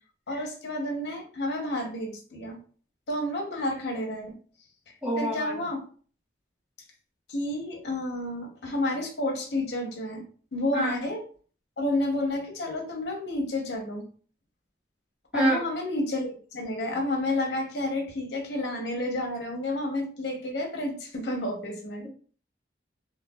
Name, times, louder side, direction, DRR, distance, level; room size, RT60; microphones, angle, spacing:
voice 1, 0.3-2.6 3.1-4.4 5.2-5.8 7.3-10.2 10.5-11.2 11.8-14.0 15.3-22.1, left 1 dB, 65° left, 1 dB, 0.8 m, -30 dB
voice 2, 5.0-5.6 10.7-11.0 15.3-15.6, right 1 dB, 5° right, -7 dB, 1.1 m, -26 dB
3.2 x 2.1 x 2.2 m, 0.42 s
head